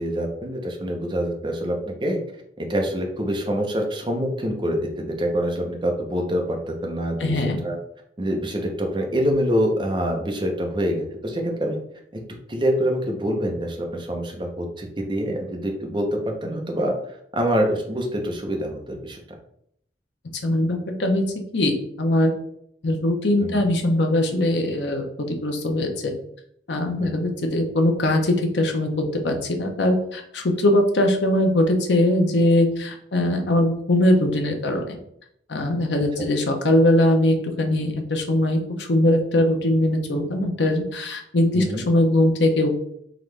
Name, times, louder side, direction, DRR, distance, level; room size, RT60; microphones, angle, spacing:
voice 1, 0.0-2.2 2.6-7.8 8.2-11.8 12.1-12.2 12.5-19.2 23.4-23.7 27.0-27.1 41.5-41.8, equal, 25° right, 2 dB, 0.7 m, -25 dB
voice 2, 7.2-7.6 20.4-21.2 21.5-22.3 22.8-26.1 26.7-35.0 35.5-42.7, left 1 dB, 85° left, 4 dB, 0.7 m, -21 dB
3.8 x 3.0 x 3.3 m, 0.70 s
head